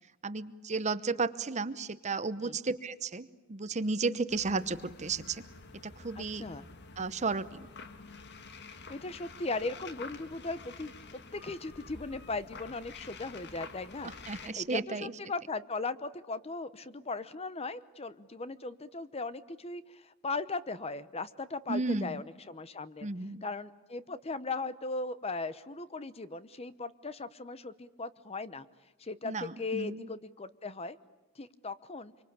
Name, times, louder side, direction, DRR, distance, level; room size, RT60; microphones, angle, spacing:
voice 1, 0.2-5.4 5.8-6.5 7.0-7.7 14.3-15.1 21.7-22.1 23.0-23.4 29.2-29.4 29.7-30.0, right 3 dB, 35° right, 14 dB, 0.9 m, -33 dB
sound 1, 4.3-14.5, left 4 dB, 50° left, 1.6 m, -49 dB
voice 2, 6.2-6.7 8.9-23.1 23.4-28.7 29.0-31.0 31.4-32.1, left 3 dB, 30° left, 14 dB, 0.8 m, -38 dB
26.0 x 24.5 x 8.7 m, 1.2 s
head